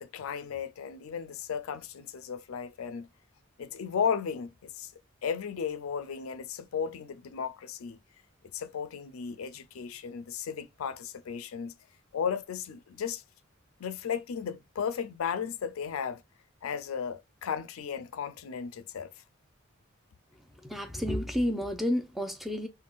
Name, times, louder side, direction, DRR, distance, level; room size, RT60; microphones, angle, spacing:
voice 1, 0.0-3.1 3.6-4.9 5.2-8.0 8.5-11.7 12.1-13.2 13.8-16.2 16.6-19.1, left 7 dB, 85° left, 0.4 m, -35 dB
voice 2, 20.6-22.7, left 1 dB, ahead, 0.5 m, -30 dB
3.5 x 2.2 x 2.3 m
head